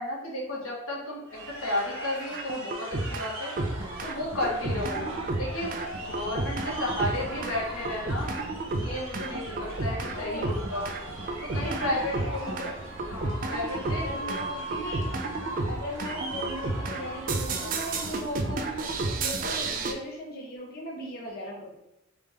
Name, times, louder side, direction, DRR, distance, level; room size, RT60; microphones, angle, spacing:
voice 1, 0.0-3.5 4.0-5.1 5.4-5.7 6.0-8.3 8.7-10.9 11.4-12.5 13.1-14.3, left 1 dB, 85° left, -4 dB, 1.5 m, -33 dB
sound 1, 1.3-19.3, right 2 dB, 85° right, 1.0 m, -40 dB
sound 2, 2.3-3.3 3.6-19.9, right 2 dB, 40° right, 0.4 m, -32 dB
voice 2, 5.0-5.3 10.1-10.5 11.6-12.8 13.8-15.1 15.6-18.7 19.1-21.7, equal, 50° left, -2 dB, 0.8 m, -38 dB
3.4 x 3.3 x 3.2 m, 0.86 s
head